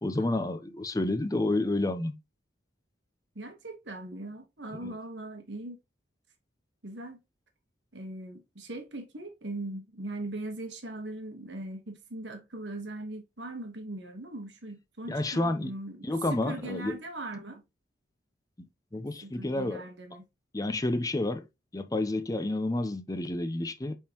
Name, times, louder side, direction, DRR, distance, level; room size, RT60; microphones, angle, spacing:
voice 1, 0.0-2.2 4.8-4.9 15.1-15.7 16.0-17.0 18.6-18.7 18.9-19.9 20.5-21.5 21.7-24.0, left 2 dB, 20° left, 0.6 m, -30 dB
voice 2, 3.3-5.8 6.8-7.2 7.9-17.6 19.0-20.2, right 2 dB, 65° right, 1.3 m, -40 dB
8.7 x 3.7 x 3.0 m
head